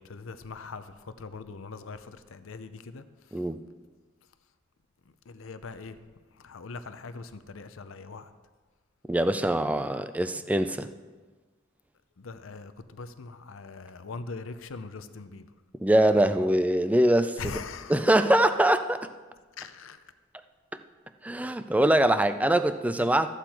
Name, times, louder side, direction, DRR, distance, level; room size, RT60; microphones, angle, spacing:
voice 1, 0.0-3.0 5.3-6.0 6.4-8.3 12.2-15.5 17.4-18.0 19.6-20.0, left 4 dB, 75° left, 11 dB, 0.6 m, -41 dB
voice 2, 9.1-10.9 15.8-17.5 17.9-19.1 21.2-23.3, right 1 dB, 5° right, 10 dB, 0.4 m, -23 dB
13.5 x 8.2 x 4.4 m, 1.4 s
head